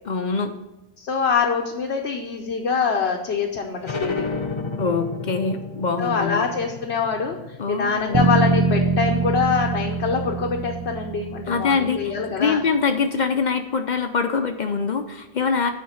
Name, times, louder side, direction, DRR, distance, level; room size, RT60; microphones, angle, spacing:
voice 1, 0.0-0.5 4.8-6.5 7.6-8.2 11.5-15.7, left 5 dB, 50° left, 7 dB, 0.7 m, -24 dB
voice 2, 1.0-4.4 6.0-12.6, left 5 dB, 85° left, 1 dB, 1.1 m, -24 dB
sound 1, 3.8-9.1, left 4 dB, 30° left, 0.9 m, -32 dB
sound 2, 8.1-12.2, right 3 dB, 30° right, 0.5 m, -23 dB
9.5 x 4.4 x 5.7 m, 1.0 s
omnidirectional pair, 1.1 m